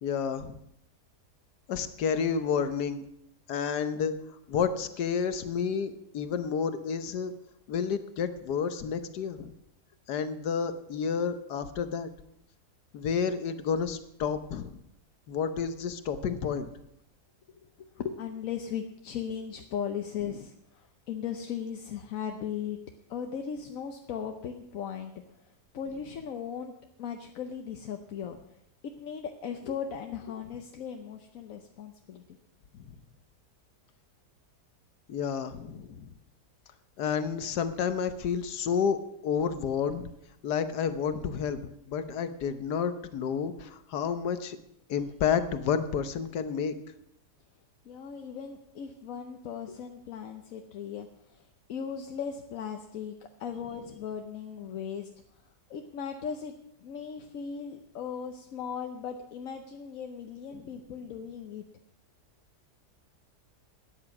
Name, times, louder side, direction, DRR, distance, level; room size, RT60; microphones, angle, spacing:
voice 1, 0.0-0.6 1.7-3.0 3.5-4.2 4.5-7.3 7.7-9.5 10.1-12.1 12.9-14.8 15.3-16.7 32.7-32.9 35.1-36.1 37.0-39.0 39.2-40.1 40.4-44.6 44.9-46.7 60.5-60.6, left 6 dB, 80° left, 10 dB, 1.5 m, -30 dB
voice 2, 17.8-22.8 23.1-25.1 25.7-26.7 27.0-28.4 29.0-32.2 47.9-55.1 55.7-56.5 56.8-61.6, left 7 dB, 60° left, 5 dB, 1.1 m, -37 dB
13.0 x 9.7 x 5.9 m, 0.77 s
omnidirectional pair, 1.8 m